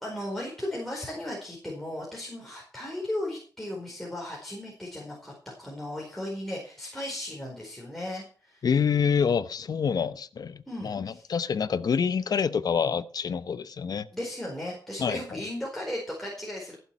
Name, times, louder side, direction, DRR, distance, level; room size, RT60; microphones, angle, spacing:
voice 1, 0.0-8.7 10.7-11.3 14.1-16.8, left 1 dB, 5° left, 4.6 m, -36 dB
voice 2, 8.6-14.1 15.0-15.2, left 6 dB, 70° left, 0.8 m, -27 dB
15.5 x 7.5 x 6.0 m
wide cardioid pair, 90°, 7 cm